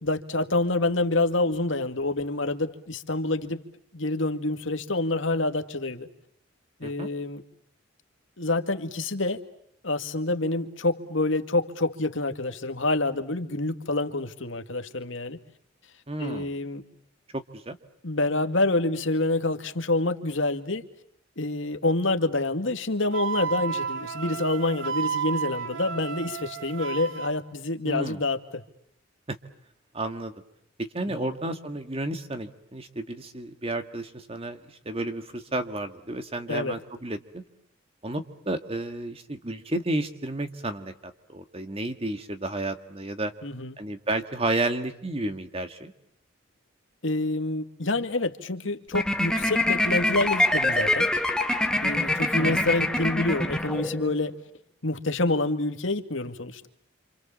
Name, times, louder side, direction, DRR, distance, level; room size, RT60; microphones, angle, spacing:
voice 1, 0.0-3.6 3.9-6.1 6.8-7.4 8.4-9.4 9.8-15.4 16.2-16.8 18.0-20.8 21.4-28.6 31.1-31.3 36.5-36.8 43.4-43.8 47.0-51.1 51.8-54.3 54.8-56.7, left 2 dB, 75° left, 7 dB, 2.2 m, -27 dB
voice 2, 16.1-16.5 17.3-17.8 27.9-28.2 29.3-29.4 29.9-30.3 30.8-37.4 38.0-43.3 43.8-45.9 52.4-52.7, right 2 dB, 30° right, 7 dB, 1.9 m, -32 dB
Wind instrument woodwind instrument, 23.1-27.3, right 6 dB, 80° right, 3.9 m, -32 dB
sound 1, 48.9-54.2, left 1 dB, 5° left, 1.9 m, -25 dB
28.5 x 27.5 x 7.4 m, 0.72 s
head